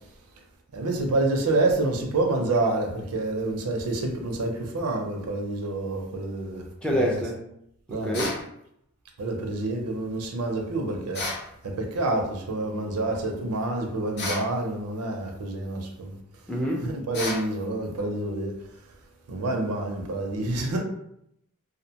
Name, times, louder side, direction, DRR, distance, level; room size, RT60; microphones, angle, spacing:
voice 1, 0.7-6.6 6.9-7.2 7.9-8.2 9.2-11.2 11.6-16.2 16.8-18.5 19.3-20.8, right 2 dB, 85° right, 0.5 m, -28 dB
voice 2, 6.8-7.4 7.9-8.4 16.5-16.9, equal, 5° left, 0.4 m, -26 dB
sound 1, 8.1-8.5 11.1-11.5 14.2-14.5 17.1-17.5, left 2 dB, 50° left, 0.6 m, -31 dB
2.5 x 2.1 x 2.7 m
head